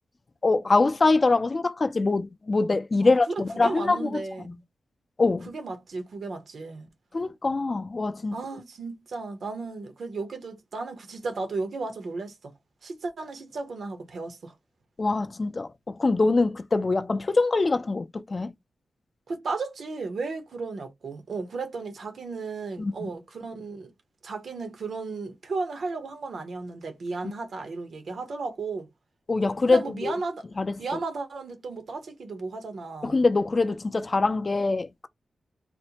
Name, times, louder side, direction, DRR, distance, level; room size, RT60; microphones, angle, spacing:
voice 1, 0.4-4.2 5.2-5.5 7.1-8.3 15.0-18.5 22.8-23.1 29.3-30.1 30.6-30.7 33.0-35.1, left 3 dB, 30° left, 0.4 m, -24 dB
voice 2, 3.0-4.6 5.5-6.9 8.3-12.5 12.8-14.5 19.3-23.9 24.2-28.9 29.7-30.4 30.8-33.1, right 3 dB, 65° right, 0.9 m, -34 dB
4.1 x 2.1 x 2.8 m
wide cardioid pair, 125°, 0 cm